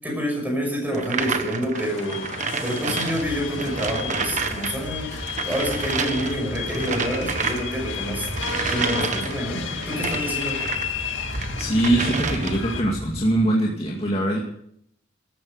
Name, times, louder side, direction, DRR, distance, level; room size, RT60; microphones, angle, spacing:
voice 1, 0.0-2.2 2.6-5.2 5.4-8.3 8.7-10.6, equal, 10° right, 1 dB, 6.0 m, -27 dB
sound 1, 0.9-10.9 11.3-12.8, right 5 dB, 40° right, 1.3 m, -30 dB
sound 2, 1.7-12.8, left 7 dB, 70° left, 2.1 m, -33 dB
sound 3, 3.2-13.3, equal, 70° right, 6.3 m, -36 dB
voice 2, 11.6-14.4, right 1 dB, 30° left, -2 dB, 2.3 m, -22 dB
14.5 x 13.5 x 6.5 m, 0.69 s
head